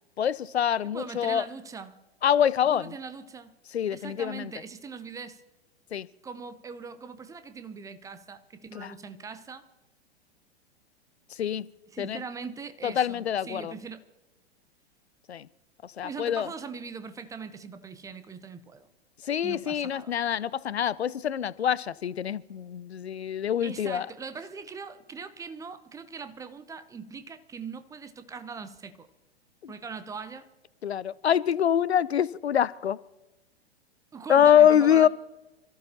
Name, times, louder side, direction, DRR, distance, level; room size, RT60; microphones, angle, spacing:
voice 1, 0.2-1.4 2.2-2.9 3.7-4.5 5.9-6.1 8.7-8.9 11.4-11.7 12.0-12.2 12.8-13.7 15.3-15.5 16.0-16.5 19.3-24.1 29.6-29.7 30.8-33.0 34.3-35.1, left 9 dB, 75° left, 0.5 m, -25 dB
voice 2, 0.8-2.0 2.6-3.5 3.9-5.4 6.2-9.7 11.9-14.0 16.0-18.9 19.4-20.1 23.6-29.1 29.7-30.5 34.1-35.1, right 5 dB, 10° right, 0.6 m, -41 dB
26.5 x 14.0 x 2.9 m
figure-of-eight pair, 100°, 32 cm